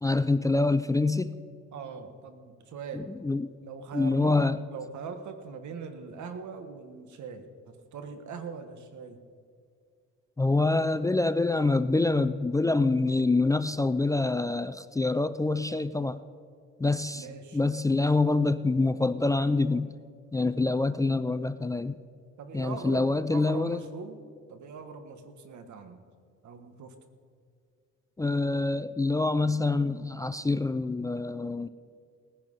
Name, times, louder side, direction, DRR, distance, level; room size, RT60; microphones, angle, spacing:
voice 1, 0.0-1.4 2.9-3.5 3.9-4.6 10.4-16.2 16.8-17.3 17.5-19.9 20.3-22.0 22.5-23.8 28.2-31.7, left 3 dB, 10° left, 13 dB, 0.4 m, -26 dB
voice 2, 1.7-3.1 3.6-4.4 4.7-9.2 17.1-17.9 22.4-24.2 24.5-26.0 26.4-27.0, right 5 dB, 70° right, 9 dB, 1.6 m, -41 dB
18.5 x 10.0 x 5.5 m, 2.2 s
cardioid pair, 90°, 30 cm